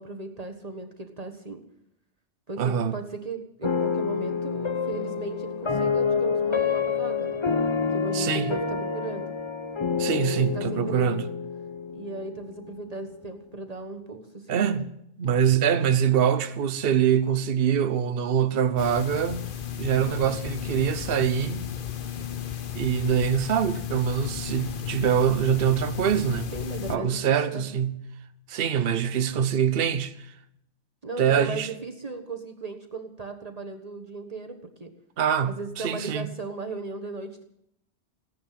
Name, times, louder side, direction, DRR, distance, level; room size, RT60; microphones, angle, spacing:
voice 1, 0.0-1.6 2.5-7.4 7.9-9.3 10.1-11.2 11.9-14.9 26.5-27.6 31.0-34.9 35.4-37.4, right 3 dB, 35° right, 1.4 m, -37 dB
voice 2, 2.6-2.9 8.1-8.5 10.0-11.2 14.5-14.9 15.2-19.5 19.8-21.7 22.7-26.5 26.9-28.0 28.5-30.1 31.2-31.7 35.2-36.3, right 8 dB, 60° right, 1.0 m, -24 dB
sound 1, 3.6-12.8, left 5 dB, 30° left, 0.9 m, -28 dB
sound 2, 18.8-27.0, left 9 dB, 50° left, 1.0 m, -34 dB
16.5 x 10.5 x 7.5 m
omnidirectional pair, 1.2 m